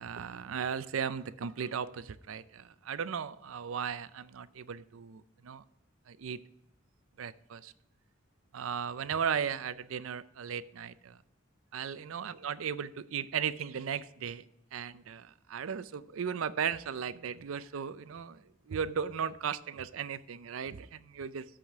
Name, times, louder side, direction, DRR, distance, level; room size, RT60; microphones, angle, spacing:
voice 1, 0.0-5.6 6.1-6.4 7.2-7.7 8.5-11.2 11.7-14.4 14.7-21.5, right 7 dB, 85° right, 16 dB, 0.5 m, -36 dB
13.5 x 5.0 x 3.5 m, 0.84 s
head